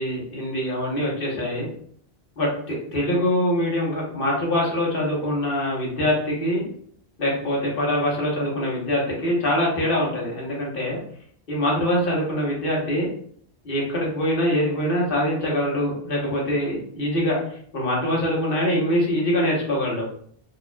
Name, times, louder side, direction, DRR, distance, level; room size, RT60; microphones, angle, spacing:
voice 1, 0.0-1.7 2.4-6.7 7.2-11.0 11.5-13.1 13.6-20.0, left 1 dB, 65° left, -3 dB, 1.3 m, -24 dB
4.3 x 2.9 x 2.3 m, 0.62 s
omnidirectional pair, 1.0 m